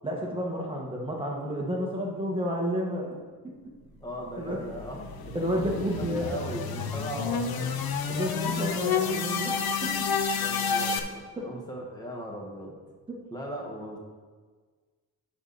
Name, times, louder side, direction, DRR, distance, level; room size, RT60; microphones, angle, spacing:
voice 1, 0.0-3.1 3.4-3.7 4.4-4.6 5.3-6.3 8.1-10.1 11.4-11.5 13.1-13.2, equal, 15° right, -2 dB, 1.6 m, -31 dB
sound 1, 3.1-13.2, right 4 dB, 70° right, 1.7 m, -45 dB
voice 2, 4.0-5.2 5.9-7.8 10.3-12.7 13.3-14.0, equal, 10° left, -1 dB, 1.5 m, -38 dB
sound 2, 4.6-11.0, left 6 dB, 75° left, 0.8 m, -30 dB
11.5 x 5.1 x 4.1 m, 1.4 s
wide cardioid pair, 160°, 37 cm